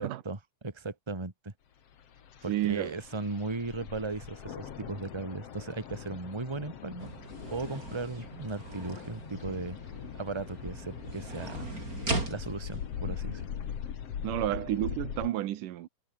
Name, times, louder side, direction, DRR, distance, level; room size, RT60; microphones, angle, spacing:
voice 1, 0.0-1.5 2.4-7.1 7.5-9.8 10.1-11.7 12.3-13.5, right 3 dB, 10° right, 1.9 m, -37 dB
sound 1, 1.9-15.3, left 8 dB, 55° left, 2.7 m, -41 dB
voice 2, 2.5-3.0 14.2-15.9, right 14 dB, 85° right, 2.7 m, -31 dB
sound 2, 7.0-14.5, right 2 dB, 25° right, 5.9 m, -40 dB
omnidirectional pair, 3.7 m